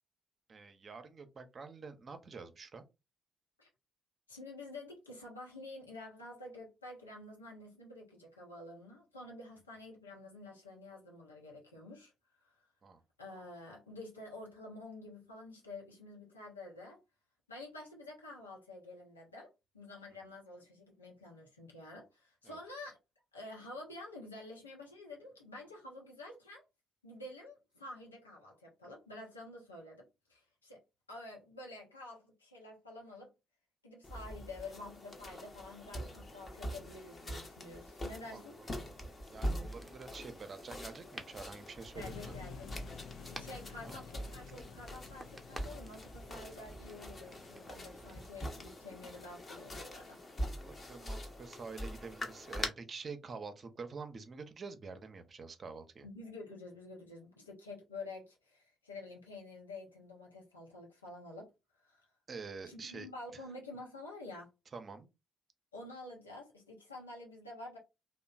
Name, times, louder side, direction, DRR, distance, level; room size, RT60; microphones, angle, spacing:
voice 1, 0.5-2.8 12.8-13.0 22.4-22.6 38.3-38.9 39.3-42.4 43.8-44.0 50.6-56.1 62.3-63.1 64.7-65.1, right 4 dB, 40° right, 0.5 m, -47 dB
voice 2, 4.3-12.1 12.4-12.5 13.2-17.0 17.5-23.0 23.3-26.6 27.0-30.8 31.1-33.3 33.8-38.6 41.9-42.7 43.3-50.2 56.0-61.5 61.8-62.0 62.6-64.5 65.7-67.8, left 2 dB, 90° left, 0.7 m, -49 dB
sound 1, 34.0-52.7, equal, 35° left, 0.8 m, -44 dB
sound 2, 39.7-48.3, right 1 dB, 5° right, 0.7 m, -55 dB
sound 3, 42.0-50.0, left 6 dB, 60° left, 0.3 m, -52 dB
2.9 x 2.0 x 2.4 m
figure-of-eight pair, 45°, 0 cm